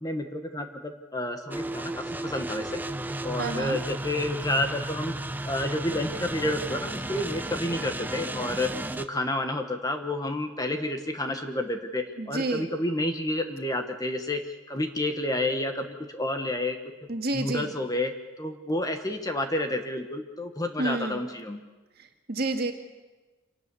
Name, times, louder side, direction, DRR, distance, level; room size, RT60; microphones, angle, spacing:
voice 1, 0.0-2.8 3.2-5.1 5.4-16.8 17.3-21.6, left 1 dB, 20° left, 6 dB, 1.3 m, -30 dB
sound 1, 1.5-9.1, right 1 dB, 10° right, 0.6 m, -34 dB
voice 2, 3.4-3.8 12.2-12.7 17.1-17.7 20.8-21.2 22.3-22.7, right 2 dB, 50° right, 4 dB, 1.9 m, -29 dB
26.5 x 12.5 x 8.4 m, 1.2 s
head